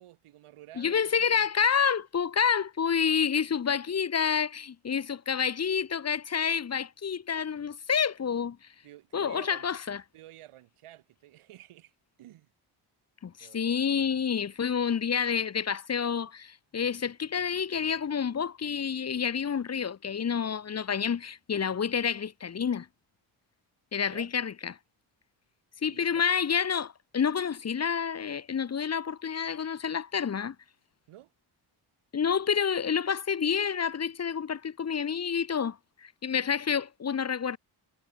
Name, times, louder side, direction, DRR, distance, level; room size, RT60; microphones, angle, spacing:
voice 1, 0.0-1.5 3.7-3.8 8.8-9.7 10.1-11.9 12.2-12.5 13.4-13.7 24.0-24.3 25.9-26.3 31.1-31.3, right 14 dB, 90° right, 6.1 m, -51 dB
voice 2, 0.8-8.6 9.1-10.0 13.2-22.9 23.9-24.8 25.8-30.5 32.1-37.6, left 7 dB, 30° left, 0.8 m, -29 dB
cardioid pair, 65°, 49 cm